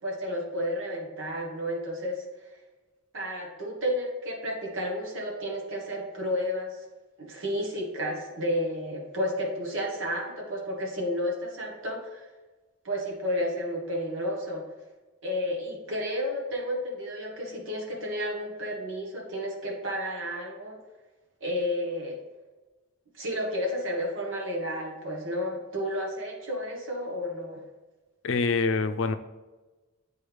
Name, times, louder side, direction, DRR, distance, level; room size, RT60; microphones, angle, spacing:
voice 1, 0.0-2.2 3.1-6.8 7.2-12.2 12.8-14.6 15.2-20.8 21.4-22.2 23.1-27.6, equal, 70° right, -1 dB, 1.3 m, -31 dB
voice 2, 28.2-29.2, left 4 dB, 65° left, 9 dB, 0.5 m, -25 dB
8.7 x 4.2 x 3.3 m, 1.2 s
head